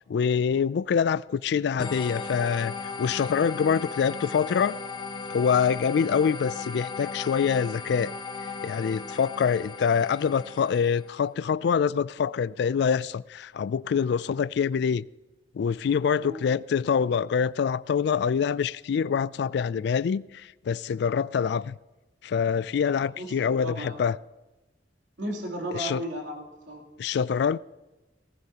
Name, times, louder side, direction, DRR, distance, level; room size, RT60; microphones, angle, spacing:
voice 1, 0.1-4.8 5.3-8.1 8.6-15.0 15.5-21.7 22.2-24.2 25.7-26.0 27.0-27.6, left 6 dB, 65° left, 0.3 m, -25 dB
sound 1, 1.8-11.2, left 4 dB, 30° left, 0.7 m, -36 dB
voice 2, 23.0-24.0 25.2-26.8, right 1 dB, 85° right, 3.3 m, -35 dB
18.5 x 14.5 x 2.9 m
head